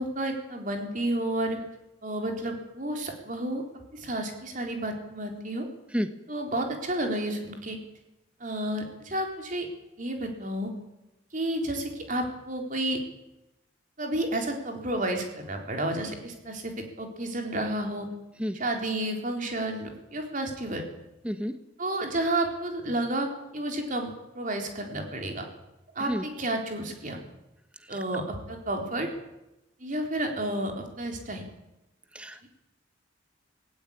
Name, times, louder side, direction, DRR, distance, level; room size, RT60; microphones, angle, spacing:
voice 1, 0.0-1.6 2.0-3.6 3.9-5.7 6.3-7.8 8.4-9.7 10.0-10.7 11.3-13.0 14.0-18.1 18.5-20.8 21.8-23.3 23.5-25.5 26.0-27.2 27.9-29.1 29.8-31.4, right 1 dB, 40° right, 3 dB, 4.0 m, -31 dB
voice 2, 32.1-32.5, equal, 5° right, 9 dB, 1.2 m, -29 dB
18.5 x 17.5 x 8.9 m, 0.94 s
head